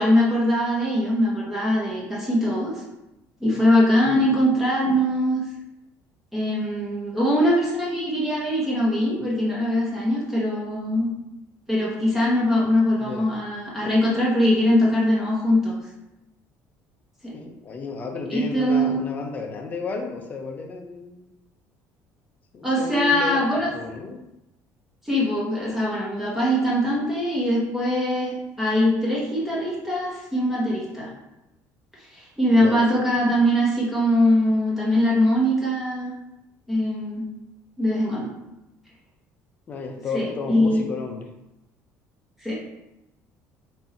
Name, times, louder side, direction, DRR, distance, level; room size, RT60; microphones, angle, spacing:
voice 1, 0.0-2.8 3.4-5.4 6.3-11.1 11.7-15.7 17.2-17.3 18.3-19.0 22.6-23.7 25.0-31.1 32.1-36.1 36.7-37.3 37.8-38.3 40.1-40.8 42.4-42.6, equal, 5° right, -5 dB, 1.1 m, -22 dB
voice 2, 17.3-21.3 22.5-23.5 23.7-24.2 32.5-33.0 39.7-41.3, left 4 dB, 25° left, 3 dB, 0.6 m, -32 dB
4.4 x 2.7 x 4.3 m, 0.92 s
cardioid pair, 170°, 6 cm